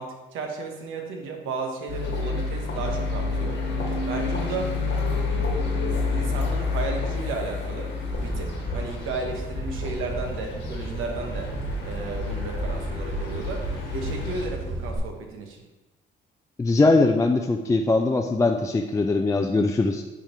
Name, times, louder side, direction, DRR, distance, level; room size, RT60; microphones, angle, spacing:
voice 1, 0.0-3.6 4.1-4.7 6.1-7.9 8.2-11.5 11.8-13.6 13.9-15.6, right 4 dB, 85° right, 2 dB, 1.1 m, -33 dB
sound 1, 1.9-14.5, left 3 dB, 65° left, 1.5 m, -29 dB
sound 2, 8.1-15.0, right 2 dB, 70° right, 1.9 m, -33 dB
voice 2, 16.6-20.0, left 3 dB, 15° left, 4 dB, 0.4 m, -21 dB
10.0 x 3.5 x 3.0 m, 1.1 s
cardioid pair, 90°, 20 cm